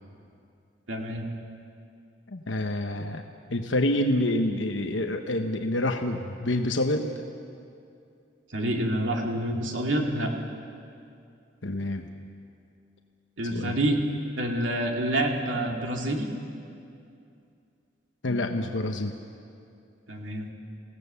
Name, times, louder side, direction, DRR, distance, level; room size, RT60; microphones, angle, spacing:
voice 1, 0.9-1.2 8.5-10.3 13.4-14.0 14.4-16.3 20.1-20.5, right 1 dB, 85° right, 1 dB, 2.5 m, -27 dB
voice 2, 2.3-3.2 3.5-7.1 11.6-12.0 13.5-13.8 18.2-19.1, left 1 dB, 75° left, 5 dB, 1.1 m, -27 dB
26.0 x 17.0 x 7.0 m, 2.5 s
head